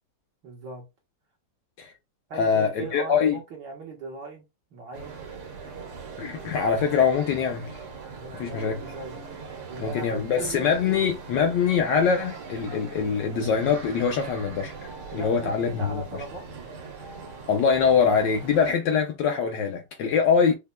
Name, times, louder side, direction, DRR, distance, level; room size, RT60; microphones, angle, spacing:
voice 1, 0.4-0.8 2.3-4.4 4.7-5.2 8.1-9.2 9.7-10.7 15.1-16.7, right 4 dB, 60° right, 1.7 m, -39 dB
voice 2, 2.3-3.4 6.2-7.8 8.3-8.8 9.8-14.7 15.1-16.2 17.5-20.5, left 6 dB, 70° left, 1.1 m, -23 dB
sound 1, 4.9-18.7, right 4 dB, 85° right, 2.0 m, -41 dB
5.3 x 2.3 x 2.2 m
omnidirectional pair, 2.3 m